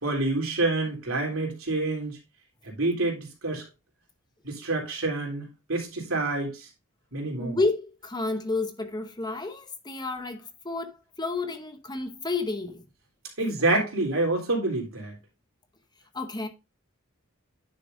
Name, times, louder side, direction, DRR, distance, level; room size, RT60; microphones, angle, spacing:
voice 1, 0.0-2.2 2.7-3.6 4.4-6.7 7.1-7.6 13.4-15.1, right 2 dB, 70° right, 3.5 m, -27 dB
voice 2, 7.4-12.8 16.1-16.5, left 3 dB, 20° left, 1.0 m, -30 dB
9.9 x 6.8 x 2.7 m
head